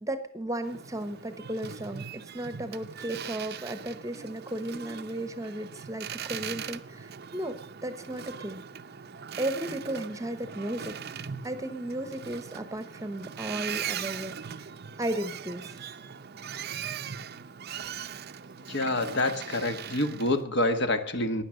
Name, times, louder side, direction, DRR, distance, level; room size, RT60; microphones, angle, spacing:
voice 1, 0.0-8.6 9.4-11.0 11.4-14.7 15.0-15.8, right 1 dB, 15° right, 11 dB, 0.9 m, -35 dB
Boat Water vehicle, 0.6-20.4, right 8 dB, 50° right, 0.6 m, -40 dB
voice 2, 18.7-21.4, left 2 dB, 55° left, 8 dB, 1.4 m, -27 dB
16.0 x 10.5 x 6.3 m, 0.63 s
head